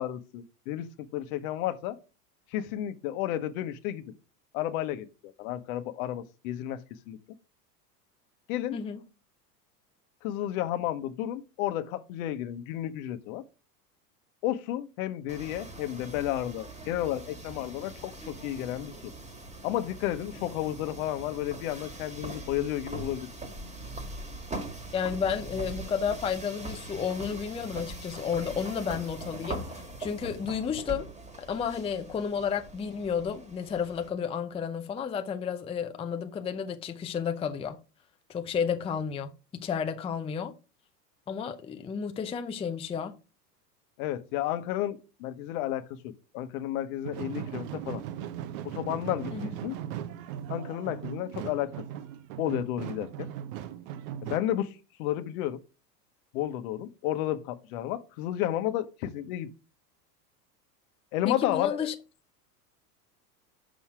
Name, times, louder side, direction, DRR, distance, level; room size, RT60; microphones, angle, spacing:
voice 1, 0.0-2.0 2.5-4.0 4.5-6.8 7.1-7.2 8.5-8.8 10.2-13.4 14.4-18.9 19.6-23.3 44.0-48.0 48.6-49.8 50.5-51.7 52.4-53.3 54.2-54.7 55.0-55.6 56.3-59.5 61.1-61.9, left 13 dB, 60° left, 1.1 m, -32 dB
voice 2, 8.7-9.0 24.9-31.1 31.4-37.8 38.3-40.5 41.3-43.2 49.3-49.5 61.2-61.9, left 7 dB, 10° left, 0.5 m, -32 dB
sound 1, 15.3-34.1, right 2 dB, 15° right, 1.6 m, -42 dB
sound 2, 47.0-54.4, right 10 dB, 55° right, 0.9 m, -38 dB
6.3 x 5.6 x 4.7 m
hypercardioid pair, 95°, 49 cm